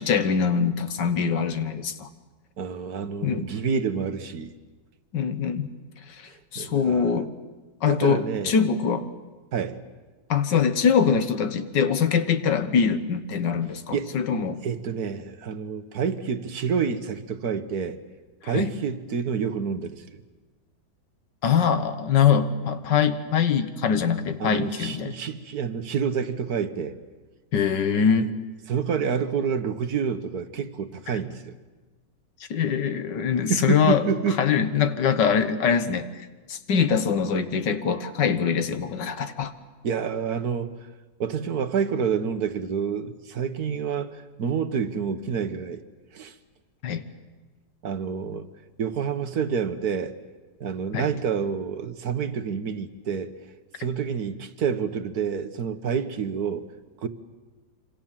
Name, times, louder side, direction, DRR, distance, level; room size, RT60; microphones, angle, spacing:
voice 1, 0.0-2.1 3.2-3.5 5.1-5.7 6.2-7.3 7.8-9.1 10.3-14.6 18.4-18.7 21.4-25.1 27.5-28.3 32.5-34.0 34.4-36.1 36.5-39.5 46.8-47.0 50.9-51.1, left 7 dB, 80° left, 1.9 m, -23 dB
voice 2, 2.6-4.5 6.5-7.2 7.9-8.6 9.5-9.8 13.9-18.0 18.4-20.2 24.4-27.0 28.7-31.5 33.5-34.4 39.8-40.9 41.2-45.8 46.1-46.3 47.8-48.5 48.8-50.2 50.6-53.4 53.8-56.7 57.0-57.1, right 6 dB, 60° right, 1.6 m, -28 dB
26.5 x 25.5 x 7.5 m
omnidirectional pair, 1.9 m